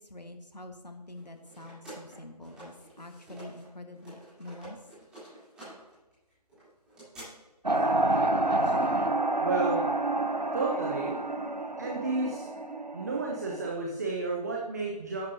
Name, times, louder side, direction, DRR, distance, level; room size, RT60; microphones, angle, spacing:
voice 1, 0.0-4.8 5.1-5.2, left 1 dB, 85° left, 6 dB, 1.4 m, -46 dB
sound 1, 1.1-3.7 3.9-7.2, right 1 dB, 5° right, 3.2 m, -50 dB
sound 2, 7.6-13.7, right 2 dB, 90° right, 0.9 m, -28 dB
voice 2, 9.4-9.9 10.5-11.2 11.8-12.5 12.9-15.3, right 3 dB, 25° right, -1 dB, 0.9 m, -31 dB
11.5 x 9.8 x 2.7 m, 1.1 s
figure-of-eight pair, 155°, 21 cm